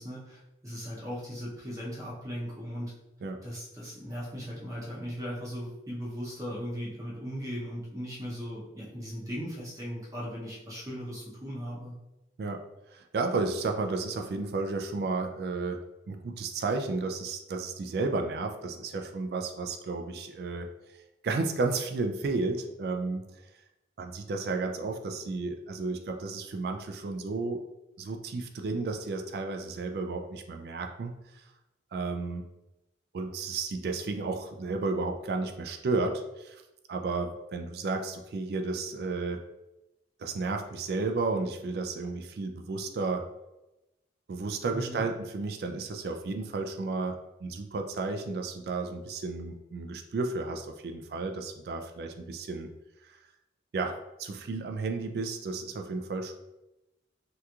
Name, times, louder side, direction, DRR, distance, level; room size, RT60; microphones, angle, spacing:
voice 1, 0.0-2.9 3.4-11.9 44.7-45.0, equal, 20° right, -6 dB, 0.6 m, -38 dB
voice 2, 12.9-15.8 16.1-20.7 21.2-23.4 24.0-27.6 28.0-31.4 31.9-32.4 33.1-36.6 36.9-39.4 40.2-43.3 44.3-52.7 53.1-53.2 53.7-56.3, right 3 dB, 60° right, 5 dB, 0.3 m, -32 dB
3.5 x 2.9 x 2.3 m, 0.96 s
head